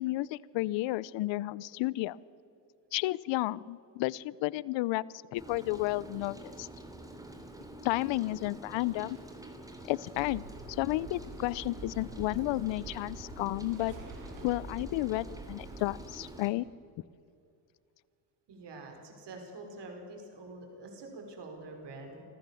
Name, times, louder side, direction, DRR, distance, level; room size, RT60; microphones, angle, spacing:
voice 1, 0.0-2.2 2.9-5.0 5.3-6.7 7.8-9.2 9.8-10.4 10.7-13.9 14.4-16.6, left 18 dB, 60° left, 22 dB, 0.7 m, -32 dB
Rain, 5.4-16.5, right 1 dB, 5° right, 3.0 m, -47 dB
sound 1, 10.1-15.8, right 3 dB, 70° right, 6.2 m, -47 dB
voice 2, 18.5-22.2, right 2 dB, 55° right, 2 dB, 5.3 m, -46 dB
25.5 x 14.5 x 7.2 m, 2.5 s
supercardioid pair, 85°, 50 cm